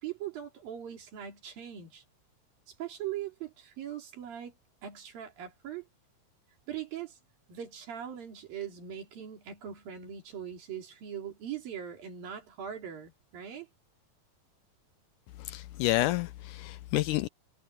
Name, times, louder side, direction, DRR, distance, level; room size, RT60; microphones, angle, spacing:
voice 1, 0.0-2.0 2.7-4.6 4.8-5.9 6.7-7.2 7.5-13.7, right 9 dB, 85° right, 5.2 m, -41 dB
voice 2, 15.5-17.3, left 17 dB, 80° left, 1.9 m, -29 dB
omnidirectional pair, 4.0 m